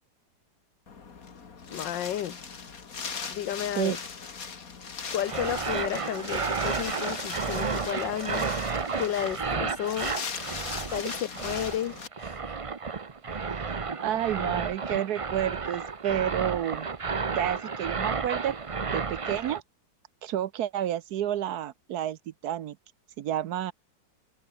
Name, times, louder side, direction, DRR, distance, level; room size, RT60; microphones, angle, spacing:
Wind, 0.9-12.1, left 5 dB, 50° left, 2.4 m, -39 dB
voice 1, 1.7-2.4 3.3-4.0 5.1-8.5 9.0-10.1 10.9-12.4, left 11 dB, 85° left, 1.7 m, -32 dB
sound 1, 5.2-19.6, right 5 dB, 45° right, 0.4 m, -32 dB
voice 2, 13.3-16.9 17.3-19.6 20.2-22.8 23.2-23.7, right 11 dB, 70° right, 1.1 m, -30 dB
omnidirectional pair, 1.9 m